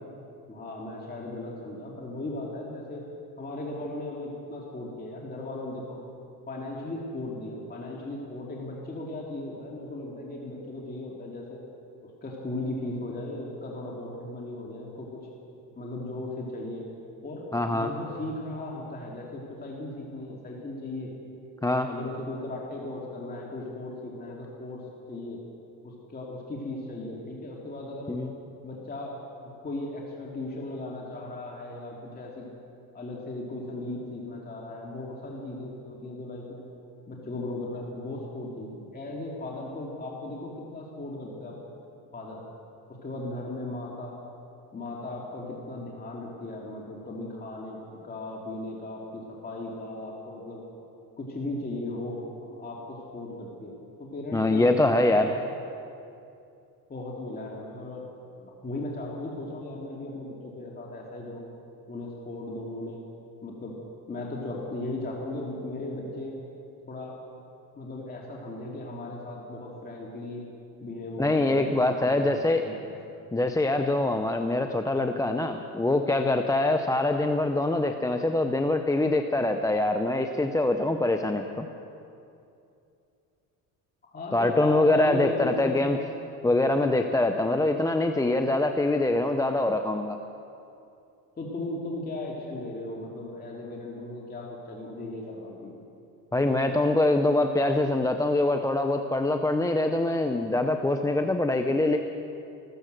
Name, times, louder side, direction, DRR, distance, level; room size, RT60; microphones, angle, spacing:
voice 1, 0.5-3.1 3.4-6.0 6.5-11.6 12.2-15.3 15.8-16.9 17.2-17.4 17.7-21.1 21.9-24.8 25.1-25.4 25.8-28.2 28.6-29.1 29.4-32.5 32.9-36.6 37.1-41.6 42.1-42.4 43.0-44.2 44.7-50.6 51.2-52.2 52.5-55.4 56.9-58.1 58.4-61.5 61.9-63.0 63.4-63.7 64.1-66.4 66.9-67.2 67.8-70.4 70.8-72.9 84.0-85.8 87.5-87.6 91.4-95.8, left 2 dB, 25° left, -3 dB, 2.4 m, -37 dB
voice 2, 17.5-17.9 21.6-21.9 28.1-28.3 54.3-55.3 71.2-72.6 73.3-81.7 84.3-86.0 86.4-90.2 96.3-102.0, left 2 dB, 10° left, 6 dB, 0.6 m, -24 dB
14.5 x 14.5 x 6.6 m, 2.7 s
cardioid pair, 105°, 38 cm